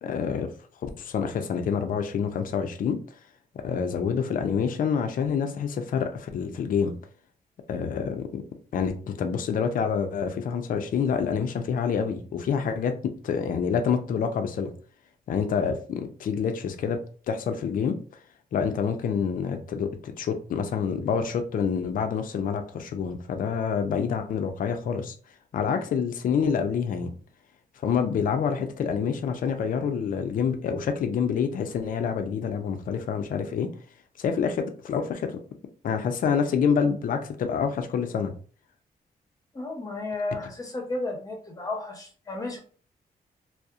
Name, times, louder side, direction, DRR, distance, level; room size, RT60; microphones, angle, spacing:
voice 1, 0.0-0.5 0.8-3.0 3.6-6.9 7.7-8.4 8.7-14.7 15.3-17.0 17.3-18.0 18.5-25.1 25.5-27.1 27.8-33.7 34.2-35.4 35.8-38.3, left 6 dB, 60° left, 0.4 m, -27 dB
voice 2, 39.5-42.6, left 2 dB, 20° left, 0.7 m, -33 dB
2.7 x 2.0 x 2.3 m
wide cardioid pair, 120°, 16 cm